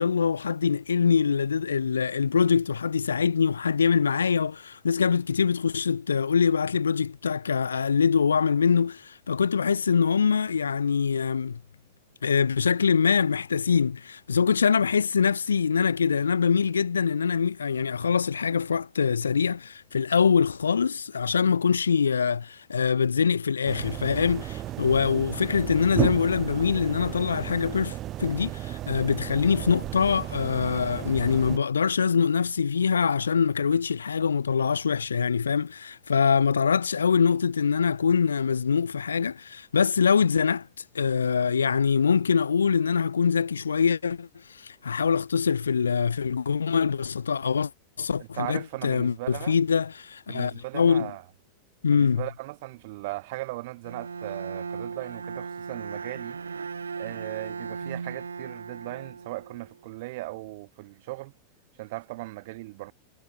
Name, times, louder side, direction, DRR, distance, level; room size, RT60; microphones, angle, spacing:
voice 1, 0.0-11.6 12.2-40.7 40.9-47.7 48.0-51.1 51.8-52.3, left 6 dB, 70° left, 0.5 m, -24 dB
sound 1, 23.7-31.6, right 14 dB, 35° right, 4.9 m, -34 dB
voice 2, 48.2-49.6 50.3-51.2 51.9-56.4 57.0-61.3 61.8-62.9, right 21 dB, 50° right, 7.8 m, -38 dB
Bowed string instrument, 53.8-59.8, right 5 dB, 75° right, 3.1 m, -37 dB
figure-of-eight pair, 90°, 0 cm